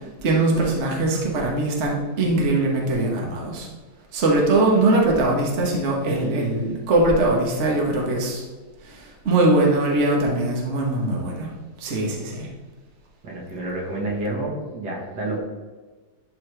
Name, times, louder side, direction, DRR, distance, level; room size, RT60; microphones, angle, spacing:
voice 1, 0.2-3.7 4.1-8.4 8.8-11.5 11.8-12.5, right 2 dB, 45° right, -1 dB, 1.4 m, -21 dB
voice 2, 13.2-15.4, right 2 dB, 70° right, -2 dB, 2.2 m, -29 dB
11.5 x 4.1 x 3.3 m, 1.3 s
omnidirectional pair, 1.9 m